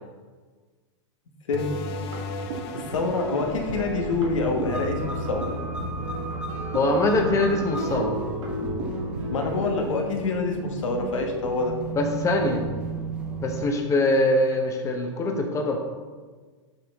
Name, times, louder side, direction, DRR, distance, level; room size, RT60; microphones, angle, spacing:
sound 1, 1.5-6.7, left 3 dB, 55° left, 0.6 m, -39 dB
sound 2, 1.6-9.9, right 2 dB, 80° right, 1.7 m, -34 dB
voice 1, 2.7-5.5 9.3-11.8, left 3 dB, 85° left, 2 dB, 1.2 m, -26 dB
sound 3, 3.4-13.6, right 2 dB, 5° right, 0.8 m, -35 dB
voice 2, 6.7-8.2 11.9-12.6 13.4-15.8, left 2 dB, 20° left, 3 dB, 0.8 m, -23 dB
6.3 x 5.6 x 3.5 m, 1.5 s
hypercardioid pair, 135°, 16 cm